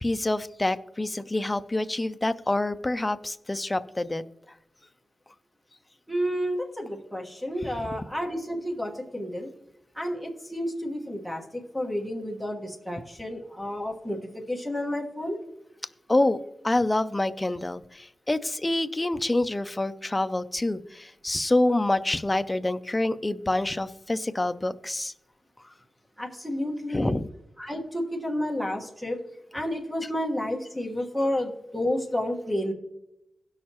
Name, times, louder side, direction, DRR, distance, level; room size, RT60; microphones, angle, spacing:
voice 1, 0.0-4.2 16.1-16.4 16.6-25.1 26.9-27.3, left 2 dB, 15° left, 11 dB, 0.3 m, -27 dB
voice 2, 6.1-9.5 9.9-15.4 26.2-27.1 27.6-29.2 29.5-32.7, equal, 5° right, 1 dB, 1.3 m, -30 dB
16.5 x 6.5 x 2.9 m, 0.88 s
wide cardioid pair, 175°, 0 cm